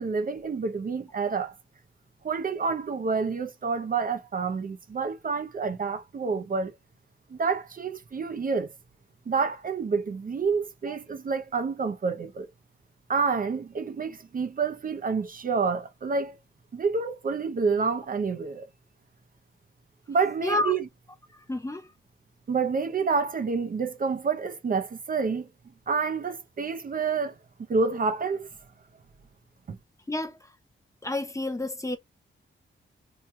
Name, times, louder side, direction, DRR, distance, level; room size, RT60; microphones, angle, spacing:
voice 1, 0.0-1.6 2.2-6.7 7.3-8.7 9.3-12.5 13.1-16.3 16.7-18.7 20.1-20.9 22.5-25.5 25.9-27.3 27.7-28.5 29.7-29.8, right 5 dB, 40° right, 0.6 m, -28 dB
voice 2, 20.4-20.7 21.5-21.9 30.1-30.4 31.0-32.0, left 1 dB, 15° left, 0.7 m, -29 dB
3.1 x 2.3 x 4.3 m
wide cardioid pair, 135°, 21 cm